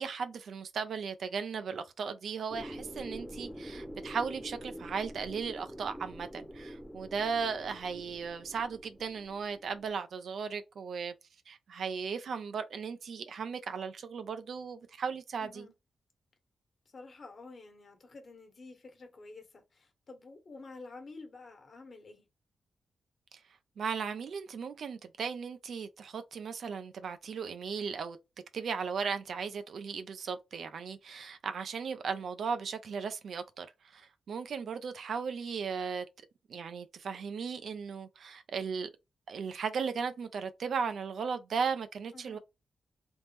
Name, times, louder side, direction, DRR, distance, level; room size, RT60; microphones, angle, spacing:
voice 1, 0.0-11.1 11.5-15.7 23.3-23.4 23.8-28.2 28.5-33.7 33.9-36.1 36.5-38.9 39.3-42.4, right 6 dB, 70° right, 0.5 m, -36 dB
sound 1, 2.5-9.9, equal, 5° right, 0.8 m, -46 dB
voice 2, 15.4-15.7 16.8-22.3 42.1-42.4, left 3 dB, 50° left, 1.2 m, -50 dB
3.5 x 2.0 x 3.0 m
cardioid pair, 80°, 0 cm